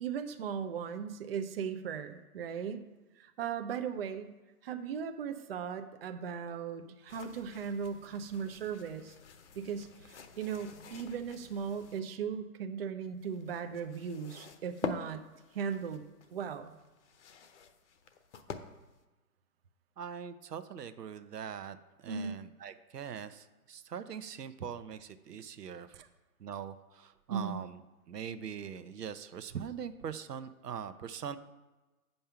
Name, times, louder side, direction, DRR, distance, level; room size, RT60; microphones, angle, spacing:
voice 1, 0.0-2.9 3.2-4.3 4.6-9.1 9.6-15.2 15.5-16.0 16.3-16.7 22.1-22.4 25.9-26.1 27.3-27.6, right 7 dB, 40° right, 7 dB, 0.6 m, -37 dB
sound 1, 7.1-12.0 13.0-19.0, left 6 dB, 50° left, 0.9 m, -46 dB
voice 2, 20.0-26.0 26.4-27.8 28.1-31.4, right 7 dB, 90° right, 11 dB, 1.0 m, -42 dB
9.0 x 5.5 x 5.7 m, 1.1 s
hypercardioid pair, 155°, 46 cm